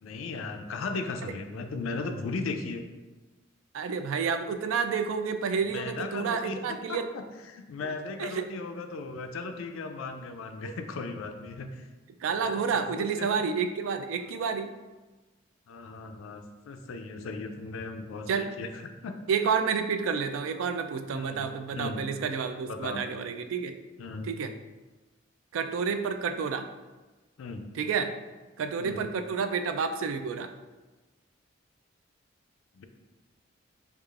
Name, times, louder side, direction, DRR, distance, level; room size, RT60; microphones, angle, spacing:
voice 1, 0.0-2.8 5.7-11.9 12.3-13.3 15.7-18.7 19.0-19.2 21.1-22.0 22.7-23.1 24.0-24.3 27.4-27.7 28.8-29.0 32.8-32.9, left 3 dB, 85° left, 6 dB, 0.4 m, -37 dB
voice 2, 3.7-7.1 7.8-7.9 8.2-8.4 10.6-10.7 12.2-14.7 18.3-18.5 19.3-23.8 24.2-24.5 25.5-26.7 27.7-28.1 28.6-30.5, right 6 dB, 75° right, 8 dB, 0.3 m, -30 dB
4.7 x 2.4 x 2.4 m, 1.2 s
head